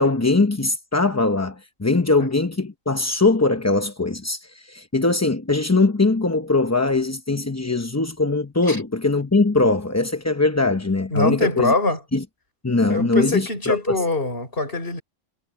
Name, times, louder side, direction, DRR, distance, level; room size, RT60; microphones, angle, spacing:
voice 1, 0.0-11.7 12.1-12.2 12.6-14.0, left 3 dB, 15° left, 0.6 m, -21 dB
voice 2, 11.1-12.0 12.9-15.0, left 2 dB, 45° left, 6.2 m, -23 dB
omnidirectional pair, 1.4 m